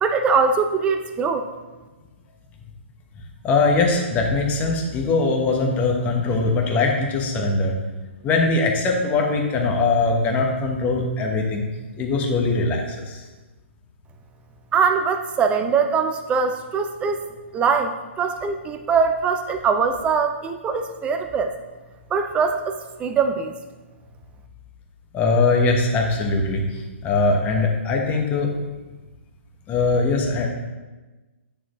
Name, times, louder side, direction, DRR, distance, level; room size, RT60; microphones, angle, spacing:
voice 1, 0.0-1.5 14.7-17.2 17.5-21.5 22.1-23.5, right 5 dB, 15° right, 7 dB, 0.5 m, -22 dB
voice 2, 3.4-7.7 8.2-11.7 12.0-13.2 25.1-28.5 29.7-30.5, left 3 dB, 25° left, 1 dB, 1.1 m, -21 dB
9.3 x 4.3 x 3.1 m, 1.2 s
hypercardioid pair, 130°, 7 cm